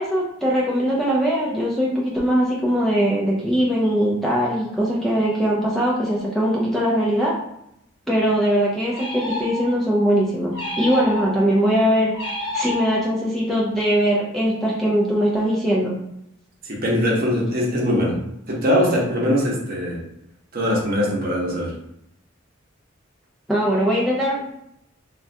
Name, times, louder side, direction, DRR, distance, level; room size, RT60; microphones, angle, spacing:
voice 1, 0.0-7.3 8.1-12.1 12.5-15.9 23.5-24.4, equal, ahead, -6 dB, 0.4 m, -21 dB
sound 1, 8.9-10.0 10.5-11.6 12.1-13.3, left 1 dB, 60° left, 1.0 m, -30 dB
voice 2, 16.6-20.0 20.5-21.8, equal, 45° right, -3 dB, 0.8 m, -22 dB
3.3 x 2.3 x 2.6 m, 0.79 s
head